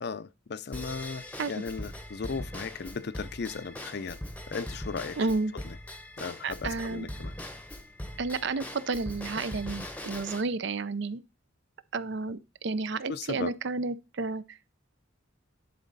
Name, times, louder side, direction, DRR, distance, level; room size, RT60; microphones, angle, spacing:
voice 1, 0.0-4.2 4.5-5.3 5.5-5.8 6.2-7.3 13.1-13.5, left 5 dB, 55° left, 0.5 m, -36 dB
Drum kit / Drum / Bell, 0.7-10.4, left 1 dB, 10° left, 0.8 m, -41 dB
voice 2, 5.2-5.5 6.4-7.1 8.2-11.2 11.9-14.7, right 3 dB, 60° right, 0.5 m, -31 dB
11.0 x 4.1 x 4.0 m
head